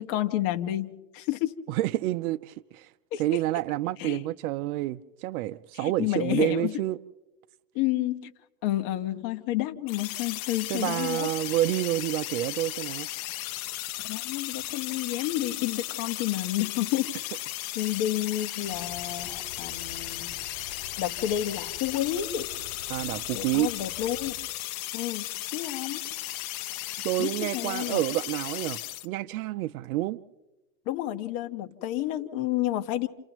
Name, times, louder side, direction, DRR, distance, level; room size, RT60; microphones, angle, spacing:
voice 1, 0.0-1.5 3.1-3.2 4.0-4.2 5.7-6.8 7.7-8.3 8.6-11.3 14.0-17.1 17.7-20.3 21.0-22.5 23.3-24.4 24.9-25.2 25.5-26.0 27.2-28.0 30.9-33.1, left 13 dB, 50° left, 1.5 m, -30 dB
voice 2, 1.7-2.9 3.2-7.0 10.7-13.1 22.9-23.7 27.0-30.2, right 16 dB, 75° right, 0.7 m, -29 dB
sound 1, 9.9-29.1, left 16 dB, 70° left, 0.9 m, -35 dB
sound 2, 18.6-24.4, left 4 dB, 25° left, 6.9 m, -48 dB
29.5 x 29.5 x 3.0 m
supercardioid pair, 135°, 44 cm